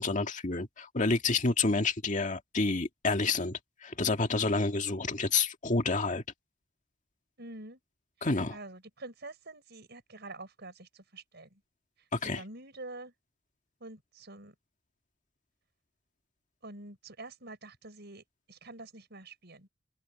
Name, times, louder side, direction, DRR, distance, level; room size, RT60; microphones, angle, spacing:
voice 1, 0.0-6.2 8.2-8.6 12.1-12.4, left 3 dB, 40° left, 1.9 m, -29 dB
voice 2, 7.4-7.8 8.2-11.6 12.2-13.1 13.8-14.5 16.6-19.7, right 2 dB, 60° right, 6.5 m, -47 dB
open air
head